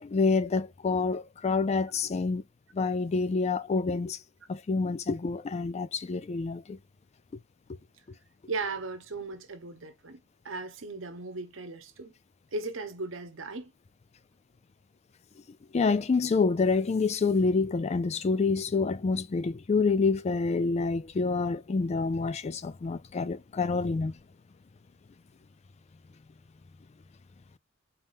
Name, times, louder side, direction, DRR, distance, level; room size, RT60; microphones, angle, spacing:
voice 1, 0.0-2.4 2.7-4.2 4.5-6.8 15.7-24.1, left 4 dB, 35° left, 0.4 m, -27 dB
voice 2, 8.5-12.1 12.5-13.7, right 3 dB, 75° right, 1.0 m, -37 dB
4.2 x 3.5 x 2.5 m
head